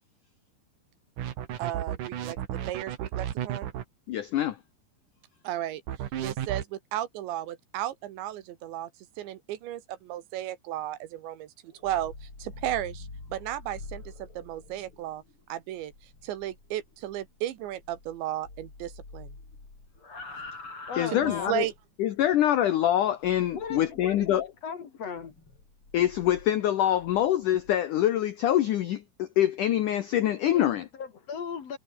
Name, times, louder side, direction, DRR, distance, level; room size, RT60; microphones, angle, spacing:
sound 1, 1.2-3.8 5.9-6.6, right 10 dB, 55° right, 2.7 m, -33 dB
voice 1, 1.6-2.4 2.7-3.7 5.4-5.8 6.2-8.9 9.2-15.2 15.5-15.9 16.2-19.3 21.1-21.7, right 13 dB, 90° right, 3.9 m, -34 dB
voice 2, 4.1-4.6 21.0-21.7 22.0-24.5 25.9-30.9, left 12 dB, 70° left, 2.0 m, -25 dB
sound 2, 11.7-18.2 18.4-21.8 23.2-24.5 25.1-27.8, left 3 dB, 30° left, 7.3 m, -46 dB
voice 3, 20.9-21.6 23.5-24.3 24.6-25.3 30.5-30.7 31.0-31.8, left 6 dB, 50° left, 2.4 m, -37 dB
omnidirectional pair, 5.1 m